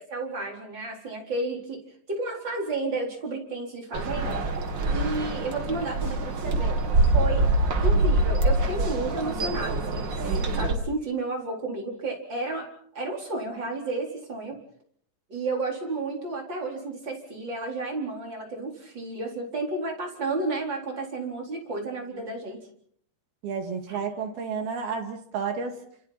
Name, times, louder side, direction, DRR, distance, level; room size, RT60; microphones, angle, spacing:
voice 1, 0.0-1.8 2.1-4.3 4.9-6.7 7.1-7.5 7.8-10.1 10.5-12.7 12.9-14.6 15.3-22.6 23.9-24.0, right 2 dB, 25° right, 0 dB, 4.5 m, -32 dB
sound 1, 3.9-10.7, right 2 dB, 90° right, 1.0 m, -25 dB
voice 2, 23.4-25.8, right 5 dB, 60° right, 4 dB, 4.1 m, -31 dB
29.5 x 27.0 x 4.3 m, 0.63 s
omnidirectional pair, 5.0 m